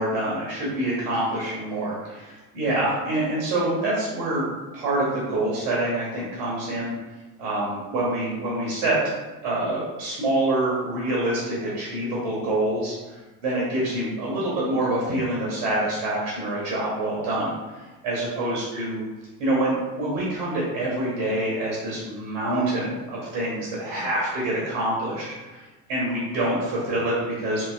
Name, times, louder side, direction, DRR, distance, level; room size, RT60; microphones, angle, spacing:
voice 1, 0.0-4.4 4.7-6.9 7.4-9.0 9.4-19.0 19.4-27.7, right 1 dB, 60° right, -5 dB, 1.1 m, -26 dB
3.1 x 2.8 x 2.4 m, 1.2 s
figure-of-eight pair, 60°, 46 cm